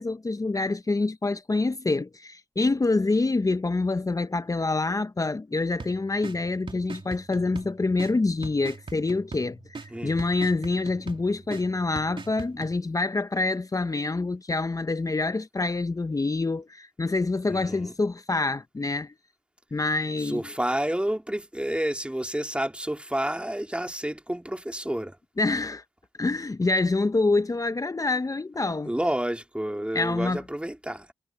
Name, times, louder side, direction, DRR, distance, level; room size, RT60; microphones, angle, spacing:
voice 1, 0.0-19.1 19.7-20.5 25.4-25.8 26.2-28.9 29.9-30.4, left 3 dB, 30° left, 0.7 m, -26 dB
sound 1, 5.8-12.8, right 4 dB, 45° right, 2.7 m, -42 dB
voice 2, 9.9-10.2 17.5-17.9 20.2-25.2 28.9-31.1, right 1 dB, 10° right, 2.5 m, -30 dB
cardioid pair, 55°, 12 cm